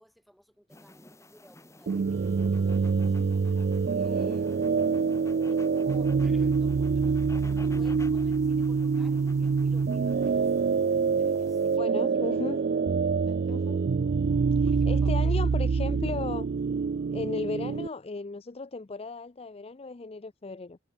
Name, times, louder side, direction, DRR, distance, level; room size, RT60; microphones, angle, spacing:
voice 1, 0.0-3.2 3.9-4.6 5.4-7.2 7.5-10.8 11.2-12.4 13.3-13.7 14.7-15.4 15.7-15.9, equal, ahead, 6.2 m, -56 dB
sound 1, 0.7-11.8, left 1 dB, 15° left, 4.0 m, -51 dB
sound 2, 1.9-17.9, right 5 dB, 55° right, 0.4 m, -26 dB
voice 2, 4.1-4.4 11.8-12.6 13.5-13.8 14.6-16.5 17.1-20.8, left 3 dB, 30° left, 0.5 m, -36 dB
head